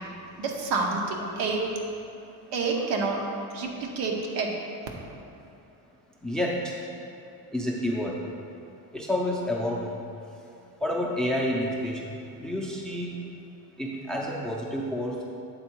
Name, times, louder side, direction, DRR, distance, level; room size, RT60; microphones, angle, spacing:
voice 1, 0.4-1.7 2.5-3.2 3.5-4.5, right 4 dB, 80° right, 0 dB, 1.1 m, -28 dB
voice 2, 6.2-6.6 7.5-8.1 8.9-9.9 10.8-11.9 12.4-13.2 13.8-15.2, left 1 dB, ahead, -2 dB, 0.4 m, -29 dB
8.0 x 3.8 x 4.5 m, 2.6 s
cardioid pair, 155°, 44 cm